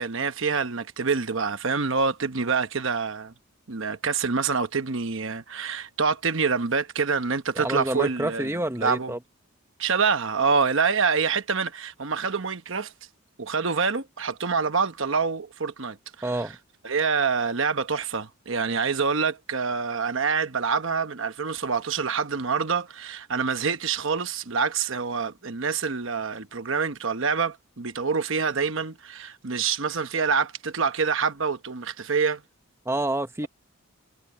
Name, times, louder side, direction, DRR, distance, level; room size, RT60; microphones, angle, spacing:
voice 1, 0.0-3.3 3.7-9.1 9.8-12.9 13.4-16.4 16.8-32.4, right 5 dB, 60° right, 1.0 m, -26 dB
voice 2, 7.6-9.2 16.2-16.6 32.8-33.5, right 1 dB, 10° right, 1.1 m, -28 dB
head